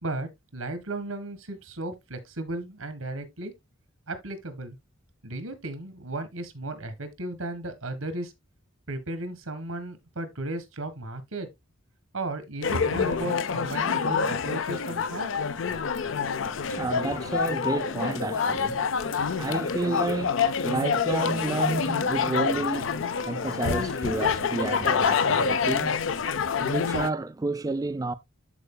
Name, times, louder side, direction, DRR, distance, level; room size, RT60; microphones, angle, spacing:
voice 1, 0.0-3.5 4.1-4.8 5.2-8.3 8.9-11.5 12.1-15.3, right 2 dB, 85° right, 1.6 m, -35 dB
sound 1, 12.6-27.1, left 5 dB, 65° left, 0.5 m, -27 dB
voice 2, 15.8-26.1 26.6-28.1, right 2 dB, 15° right, 0.3 m, -31 dB
13.0 x 4.6 x 2.2 m
head